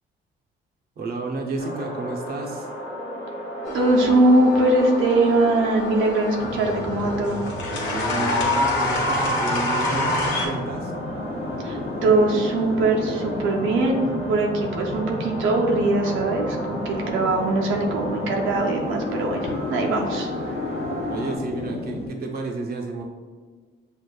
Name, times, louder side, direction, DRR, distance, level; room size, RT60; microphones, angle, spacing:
voice 1, 1.0-2.7 7.5-10.9 21.1-23.0, right 3 dB, 50° right, 1 dB, 0.7 m, -31 dB
sound 1, 1.6-21.4, equal, 55° left, 1.0 m, -34 dB
sound 2, 3.7-10.5, left 1 dB, 80° left, 0.9 m, -27 dB
voice 2, 3.7-7.4 11.6-20.5, right 2 dB, 90° right, 0 dB, 0.6 m, -21 dB
sound 3, 6.4-22.1, left 3 dB, 30° left, 0.7 m, -33 dB
6.4 x 2.4 x 2.2 m, 1.5 s
cardioid pair, 90°, 20 cm